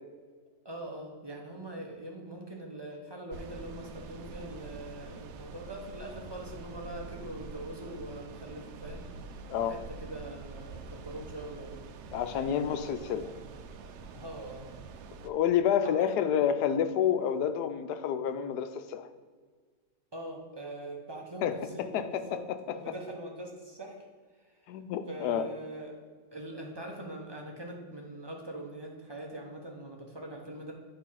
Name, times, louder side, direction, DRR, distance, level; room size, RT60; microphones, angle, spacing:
voice 1, 0.6-9.1 9.7-11.9 12.3-13.4 14.1-14.7 15.8-16.4 20.1-22.4 22.7-24.0 24.4-24.6 25.1-26.0 26.3-30.7, right 1 dB, 35° right, 0 dB, 0.4 m, -43 dB
sound 1, 3.3-15.3, right 4 dB, 80° right, 0.6 m, -46 dB
voice 2, 12.1-13.2 15.2-19.1 21.4-22.2 22.5-22.6 22.9-23.0 24.7-25.5, left 9 dB, 80° left, 9 dB, 1.1 m, -29 dB
8.6 x 3.2 x 5.6 m, 1.5 s
omnidirectional pair, 1.8 m